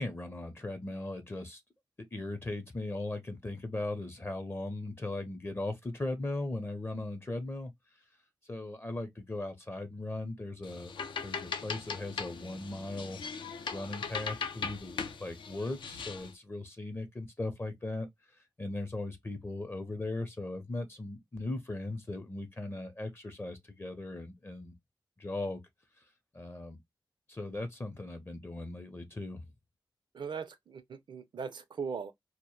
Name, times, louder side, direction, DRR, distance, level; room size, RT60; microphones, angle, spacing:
voice 1, 0.0-1.6 2.1-7.7 8.5-10.9 11.2-13.2 13.7-18.1 18.6-24.7 25.2-25.6 26.3-26.8 27.3-29.5, left 2 dB, 30° left, 0.6 m, -38 dB
sound 1, 10.6-16.3, left 5 dB, 75° left, 0.4 m, -39 dB
voice 2, 30.1-32.1, right 6 dB, 65° right, 0.4 m, -39 dB
2.1 x 2.0 x 3.0 m
cardioid pair, 60°, 8 cm